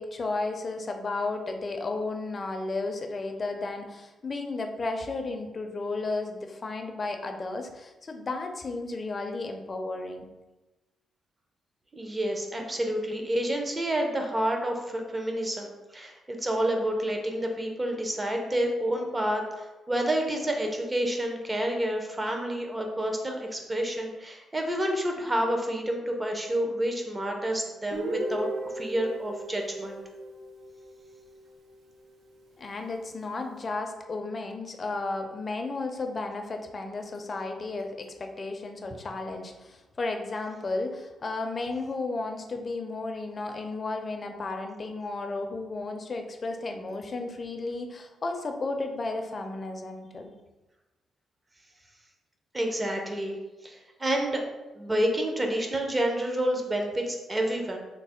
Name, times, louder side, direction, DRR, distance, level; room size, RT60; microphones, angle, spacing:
voice 1, 0.0-10.3 32.6-50.3, left 3 dB, 40° left, 4 dB, 0.4 m, -33 dB
voice 2, 11.9-28.5 28.7-30.0 52.5-53.4 53.6-54.4 54.7-57.8, right 1 dB, 20° right, 2 dB, 0.6 m, -29 dB
Guitar, 27.9-31.7, right 2 dB, 80° right, 0.5 m, -37 dB
3.2 x 2.0 x 4.2 m, 1.1 s
cardioid pair, 85°, 0 cm